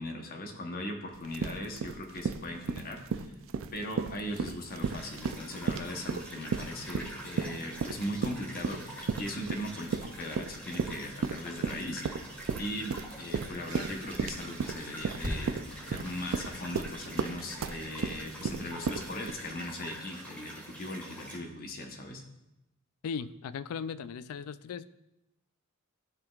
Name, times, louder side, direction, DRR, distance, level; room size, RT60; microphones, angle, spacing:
voice 1, 0.0-3.3 3.7-22.2, left 1 dB, 45° left, 3 dB, 0.9 m, -39 dB
sound 1, 1.1-19.3, right 5 dB, 60° right, 0.4 m, -34 dB
sound 2, 4.6-21.4, equal, 5° left, 1.6 m, -46 dB
sound 3, 13.7-20.0, equal, 40° right, 2.7 m, -45 dB
voice 2, 23.0-24.9, left 6 dB, 75° left, 16 dB, 0.3 m, -37 dB
14.0 x 5.2 x 2.3 m, 0.93 s
head